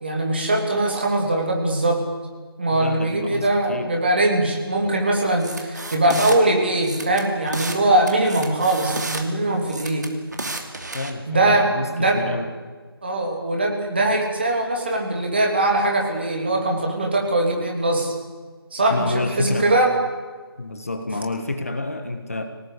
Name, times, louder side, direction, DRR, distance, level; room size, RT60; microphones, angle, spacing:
voice 1, 0.0-2.0 2.6-10.1 11.3-12.2 13.0-18.1 18.7-19.9, right 1 dB, 25° right, 1 dB, 3.1 m, -21 dB
voice 2, 2.7-3.9 4.8-5.0 10.9-12.5 18.9-19.8 20.6-22.4, left 2 dB, 35° left, 6 dB, 1.5 m, -28 dB
sound 1, 5.4-6.4 6.8-7.8 8.1-9.2 9.7-11.1, right 2 dB, 45° right, 2.7 m, -31 dB
25.5 x 18.0 x 8.4 m, 1.4 s
figure-of-eight pair, 175°, 13 cm